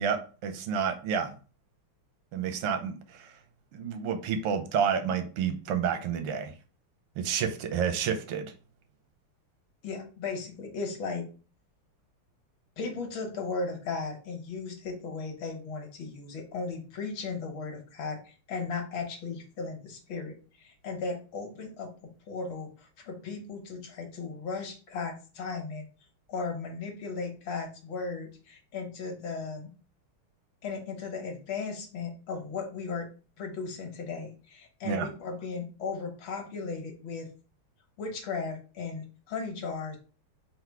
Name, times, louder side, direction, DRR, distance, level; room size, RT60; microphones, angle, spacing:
voice 1, 0.0-1.3 2.3-3.4 3.7-6.5 7.2-8.5 34.8-35.1, right 7 dB, 85° right, 7 dB, 1.6 m, -30 dB
voice 2, 9.8-11.3 12.8-25.8 26.3-29.7 30.6-33.1 33.4-37.3 38.0-40.0, left 4 dB, 70° left, 2 dB, 1.6 m, -36 dB
4.5 x 2.1 x 4.5 m, 0.36 s
omnidirectional pair, 2.4 m